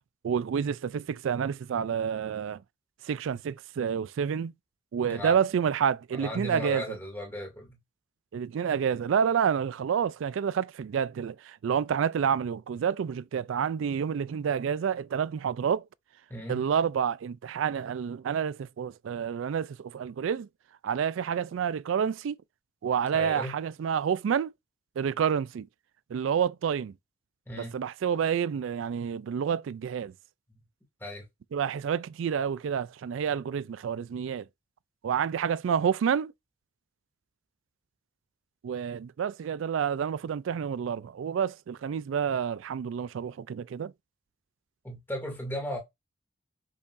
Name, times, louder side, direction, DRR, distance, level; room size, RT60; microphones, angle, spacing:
voice 1, 0.2-2.6 3.0-4.5 4.9-6.8 8.3-15.8 16.5-20.5 20.8-22.4 22.8-24.5 25.0-25.7 26.1-26.9 27.6-30.1 31.5-34.4 35.0-36.3 38.6-43.9, right 7 dB, 85° right, 0.3 m, -29 dB
voice 2, 6.1-7.8 16.3-16.6 23.1-23.6 27.5-27.8 31.0-31.2 44.8-45.8, equal, 10° left, 2.4 m, -36 dB
6.6 x 5.5 x 2.6 m
head